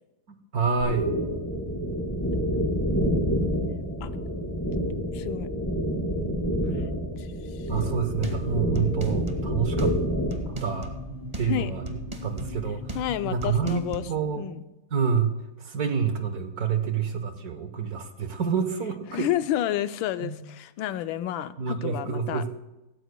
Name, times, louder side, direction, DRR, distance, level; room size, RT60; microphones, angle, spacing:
voice 1, 0.3-1.1 7.7-9.9 10.6-10.9 11.4-13.0 13.3-14.4 14.9-15.3 15.6-19.3 20.2-20.4 21.6-22.5, right 6 dB, 55° right, 7 dB, 1.4 m, -28 dB
sound 1, 0.8-10.5, equal, 10° left, 4.3 m, -28 dB
voice 2, 5.1-5.5 7.2-7.7 11.5-11.7 12.9-14.0 14.4-14.6 19.1-22.4, left 12 dB, 80° left, 11 dB, 1.3 m, -30 dB
sound 2, 7.8-14.0, right 1 dB, 25° right, 1.0 m, -36 dB
17.5 x 16.0 x 2.2 m, 0.98 s
omnidirectional pair, 2.1 m